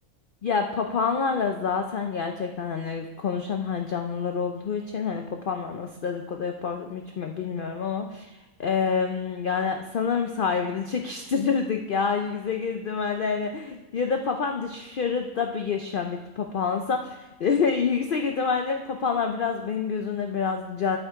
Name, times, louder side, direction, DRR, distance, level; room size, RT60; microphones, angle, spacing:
voice 1, 0.4-8.3 8.6-21.0, left 5 dB, 75° left, 5 dB, 0.4 m, -27 dB
8.0 x 7.4 x 4.6 m, 1.1 s
omnidirectional pair, 1.6 m